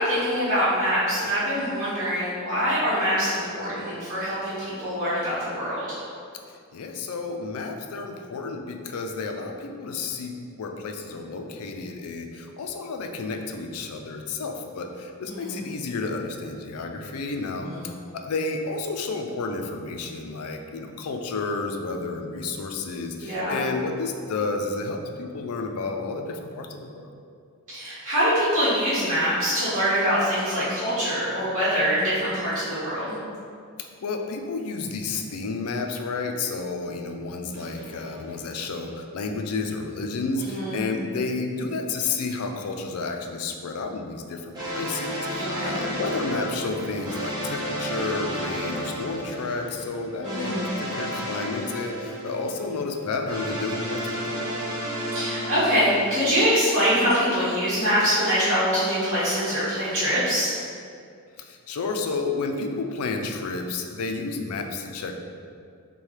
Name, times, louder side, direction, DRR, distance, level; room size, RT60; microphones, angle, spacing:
voice 1, 0.0-6.0 15.3-15.6 17.6-17.9 23.2-23.6 27.7-33.1 40.4-40.8 45.5-45.8 50.2-50.6 55.1-60.5, equal, 35° right, -13 dB, 1.4 m, -24 dB
voice 2, 6.7-17.7 18.1-27.1 33.8-54.6 61.4-65.1, left 3 dB, 85° left, 4 dB, 0.4 m, -31 dB
sound 1, 37.5-38.7 44.5-56.5, equal, 20° right, 0.9 m, -32 dB
6.3 x 2.3 x 3.1 m, 2.3 s
head